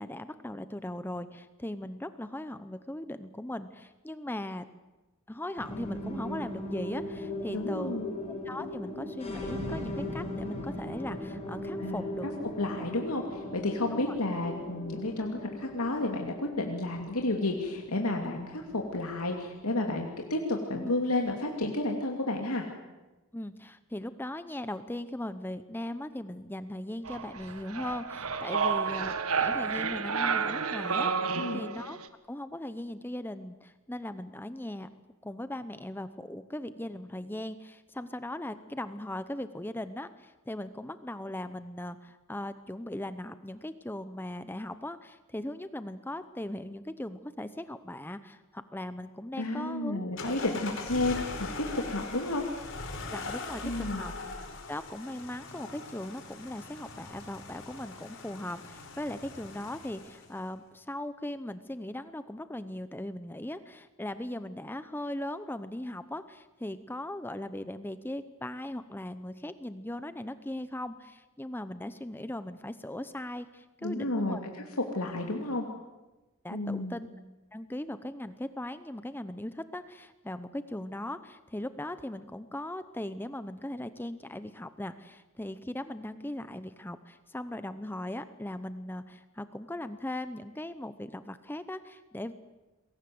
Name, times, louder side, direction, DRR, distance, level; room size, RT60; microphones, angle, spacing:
voice 1, 0.0-4.6 5.3-12.4 13.9-14.1 20.7-20.9 23.3-32.0 32.3-34.9 35.2-50.5 53.1-53.6 53.9-54.3 54.7-74.4 76.4-77.1 77.5-92.3, left 1 dB, 10° left, 12 dB, 0.8 m, -39 dB
sound 1, 5.6-20.2, left 1 dB, 30° left, 5.7 m, -39 dB
voice 2, 7.5-8.1 11.8-12.1 12.6-22.7 31.3-31.6 49.4-52.4 53.6-54.1 73.8-74.6 74.9-75.7 76.5-77.0, left 2 dB, 90° left, 2 dB, 2.8 m, -31 dB
sound 2, 27.0-32.1, right 5 dB, 80° right, 1.6 m, -30 dB
sound 3, 50.2-60.4, left 3 dB, 60° left, 4.5 m, -41 dB
28.0 x 22.0 x 7.9 m, 1.1 s
head